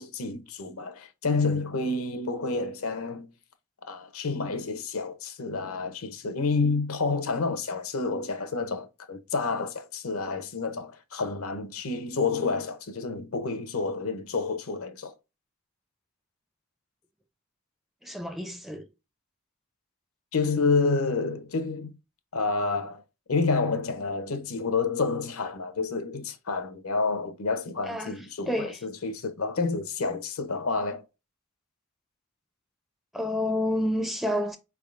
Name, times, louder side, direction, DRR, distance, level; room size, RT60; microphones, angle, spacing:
voice 1, 0.0-3.3 3.9-15.1 20.3-21.9 22.3-23.0 23.3-31.0, left 4 dB, 80° left, 0.7 m, -29 dB
voice 2, 18.0-18.9 27.9-28.1 28.5-28.8 33.1-34.6, left 1 dB, ahead, 0.4 m, -29 dB
4.7 x 3.5 x 2.4 m
head